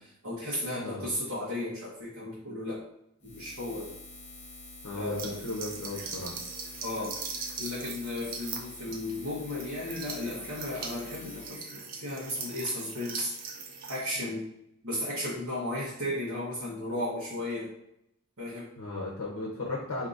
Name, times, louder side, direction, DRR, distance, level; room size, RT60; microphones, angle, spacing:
voice 1, 0.0-2.8 3.2-3.9 5.0-5.4 6.8-7.1 7.6-13.3 13.9-14.5 14.8-17.7 18.4-18.7, left 1 dB, 70° right, -9 dB, 1.1 m, -34 dB
voice 2, 0.8-1.1 4.8-6.4 14.2-14.3 18.8-20.1, left 2 dB, 75° left, -2 dB, 0.7 m, -36 dB
Buzz, 3.2-11.5, left 2 dB, 30° left, 0.7 m, -47 dB
sound 1, 5.2-14.0, right 5 dB, 40° right, 0.4 m, -41 dB
3.8 x 2.7 x 2.5 m, 0.80 s
head